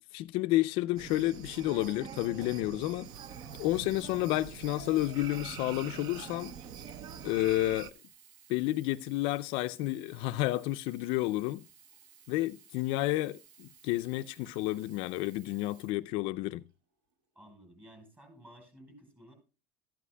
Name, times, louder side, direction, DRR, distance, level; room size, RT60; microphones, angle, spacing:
voice 1, 0.1-3.1 3.6-6.5 7.2-7.9 8.5-11.6 12.3-16.6, left 17 dB, 65° left, 0.4 m, -31 dB
sound 1, 1.0-7.9, right 8 dB, 45° right, 0.6 m, -44 dB
Sink (filling or washing), 2.9-16.7 17.4-17.5, right 7 dB, 85° right, 1.3 m, -59 dB
voice 2, 17.3-19.3, equal, 20° right, 4.4 m, -54 dB
13.0 x 11.0 x 2.2 m
cardioid pair, 150°, 10 cm